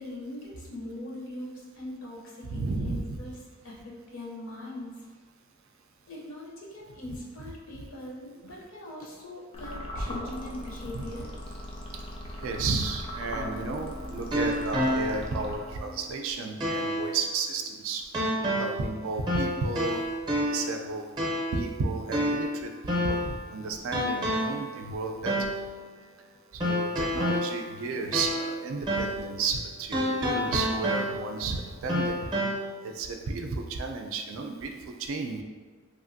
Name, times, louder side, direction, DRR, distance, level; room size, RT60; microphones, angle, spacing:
voice 1, 0.0-3.4 3.6-5.1 6.1-11.3, left 1 dB, 65° left, -3 dB, 0.6 m, -40 dB
voice 2, 2.4-3.2 10.9-11.0 12.4-18.0 18.6-20.0 20.4-21.1 21.5-25.5 26.5-32.3 32.8-35.4, right 4 dB, 65° right, 4 dB, 0.3 m, -33 dB
sound 1, 9.5-16.0, equal, 25° left, 0.3 m, -39 dB
sound 2, 13.3-15.4 15.8-15.9 16.6-17.1 18.1-18.9 19.3-20.8 21.2-21.6 22.1-23.4 23.9-24.7 25.2-25.7 26.6-28.6 28.9-29.3 29.9-31.4 31.9-32.5, equal, 20° right, 0.6 m, -29 dB
3.0 x 2.4 x 2.5 m, 1.4 s
head